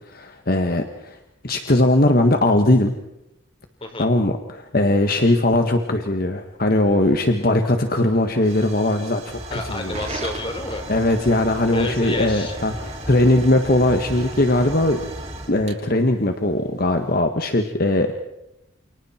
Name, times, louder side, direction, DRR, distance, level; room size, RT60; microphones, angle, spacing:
voice 1, 0.0-1.2 1.4-2.9 4.0-10.0 10.9-15.0 15.5-18.2, left 1 dB, 50° left, 5 dB, 1.7 m, -20 dB
Hiss / Fire / Tick, 6.8-17.2, right 2 dB, 35° right, 5.4 m, -38 dB
sound 1, 9.3-15.5, equal, 20° right, 3.9 m, -37 dB
voice 2, 9.5-10.9 11.7-12.6, left 2 dB, 30° left, 4 dB, 4.6 m, -29 dB
29.5 x 29.0 x 4.5 m, 0.87 s
head